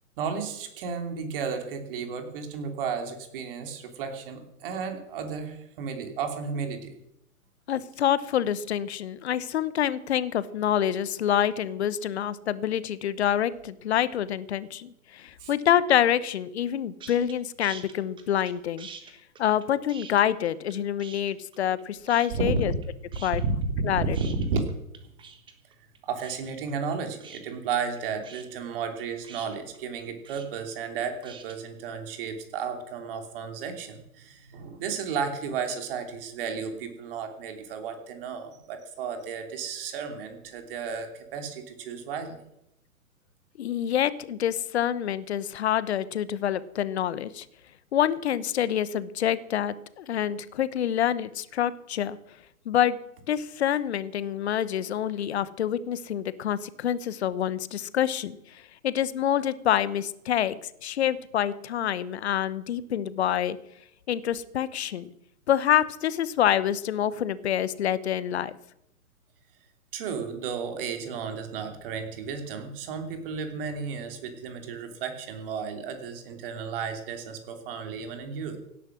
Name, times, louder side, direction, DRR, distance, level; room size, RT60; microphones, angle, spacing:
voice 1, 0.2-7.0 15.4-15.5 22.3-22.5 24.5-24.6 25.0-25.1 26.0-42.4 69.9-78.6, right 6 dB, 40° right, 6 dB, 3.2 m, -33 dB
voice 2, 7.7-18.9 19.4-22.7 23.2-23.4 23.8-24.2 43.6-47.5 47.9-52.2 52.6-53.0 53.3-63.6 64.1-65.1 65.5-68.5, left 10 dB, 45° left, 16 dB, 1.1 m, -27 dB
sound 1, 17.0-17.3 17.6-18.5 18.8-20.7 21.0-21.8 22.1-22.9 23.1-31.6, right 6 dB, 10° right, 1.4 m, -46 dB
17.0 x 11.0 x 6.3 m, 0.80 s
hypercardioid pair, 135°, 44 cm